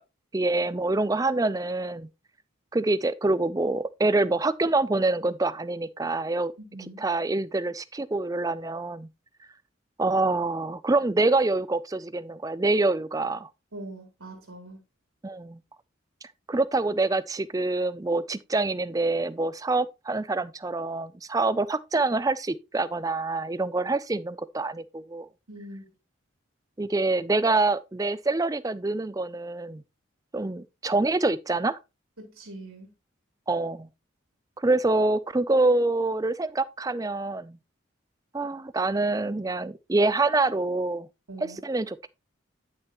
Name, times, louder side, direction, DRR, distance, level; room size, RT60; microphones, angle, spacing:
voice 1, 0.3-2.1 2.7-6.5 7.0-9.1 10.0-13.5 15.2-15.6 16.5-25.3 26.8-29.8 30.3-31.8 33.5-33.9 34.6-37.6 38.3-41.1 41.4-42.1, right 2 dB, 15° right, 0.4 m, -26 dB
voice 2, 6.7-7.0 13.7-14.8 25.5-25.8 32.2-32.9 41.3-41.6, right 1 dB, 90° right, 3.0 m, -42 dB
10.5 x 6.4 x 2.9 m
head